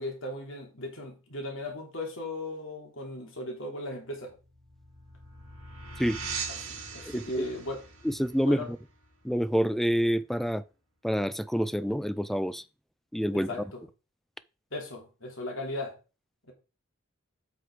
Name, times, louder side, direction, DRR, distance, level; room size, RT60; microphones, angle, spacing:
voice 1, 0.0-4.4 6.5-7.8 8.4-8.7 13.5-13.8 14.7-16.0 16.5-16.6, left 1 dB, 65° left, 3.2 m, -37 dB
sound 1, 4.3-9.7, right 4 dB, 85° right, 3.4 m, -41 dB
voice 2, 7.1-7.4 8.0-8.8 9.2-10.6 11.0-12.6 13.1-13.5, equal, ahead, 0.4 m, -27 dB
8.1 x 6.3 x 4.8 m
head